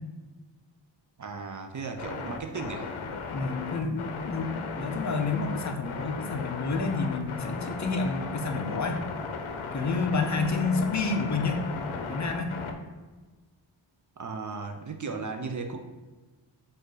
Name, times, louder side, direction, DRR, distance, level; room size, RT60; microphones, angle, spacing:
voice 1, 1.2-2.9 14.2-15.8, right 4 dB, 40° right, 5 dB, 0.5 m, -36 dB
sound 1, 2.0-12.7, left 4 dB, 80° left, 0.6 m, -36 dB
voice 2, 3.3-9.0 9.7-11.6 11.9-12.6, left 4 dB, 40° left, 4 dB, 0.5 m, -29 dB
5.0 x 2.5 x 3.8 m, 1.3 s
cardioid pair, 65°, 48 cm